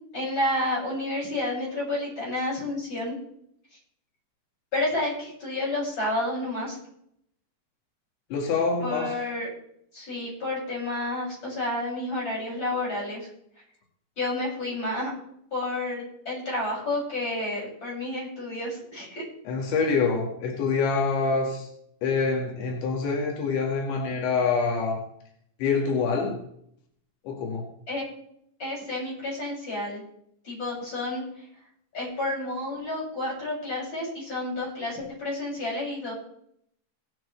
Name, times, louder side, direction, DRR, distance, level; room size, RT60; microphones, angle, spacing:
voice 1, 0.1-3.2 4.7-6.8 8.8-9.5 9.9-13.3 14.2-15.1 15.5-19.3 27.9-28.0 28.6-30.0 30.4-31.2 31.9-36.1, left 1 dB, 25° left, -5 dB, 7.6 m, -30 dB
voice 2, 8.3-9.2 19.5-21.7 22.0-25.0 25.6-26.4 27.2-27.7, left 4 dB, 85° left, 1 dB, 4.4 m, -26 dB
18.0 x 12.0 x 3.3 m, 0.70 s
omnidirectional pair, 5.0 m